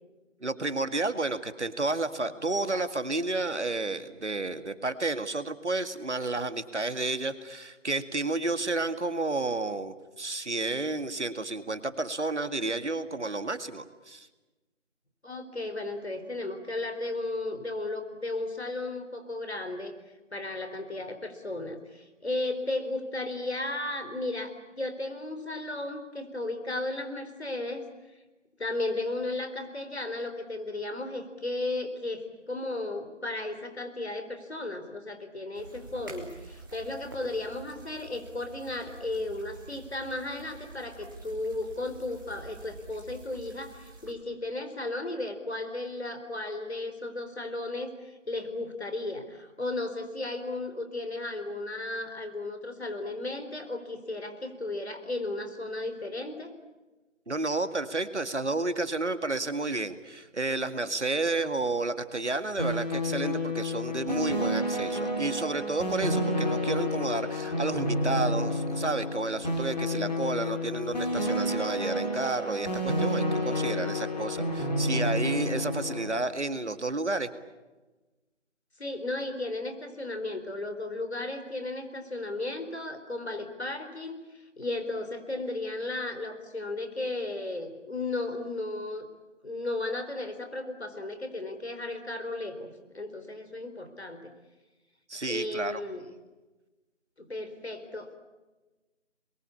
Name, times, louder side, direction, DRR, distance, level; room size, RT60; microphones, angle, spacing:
voice 1, 0.4-14.3 57.3-77.3 95.1-95.8, right 2 dB, 65° right, 10 dB, 2.2 m, -31 dB
voice 2, 15.2-19.9 20.3-27.8 28.6-56.5 78.8-84.2 84.6-89.1 89.4-94.3 95.2-96.0 97.2-98.2, left 2 dB, 60° left, 7 dB, 4.4 m, -35 dB
sound 1, 35.5-44.1, right 3 dB, 15° right, 2.5 m, -48 dB
sound 2, 62.6-76.1, left 1 dB, 35° left, 4.3 m, -30 dB
28.5 x 22.5 x 8.6 m, 1.2 s
figure-of-eight pair, 175°, 37 cm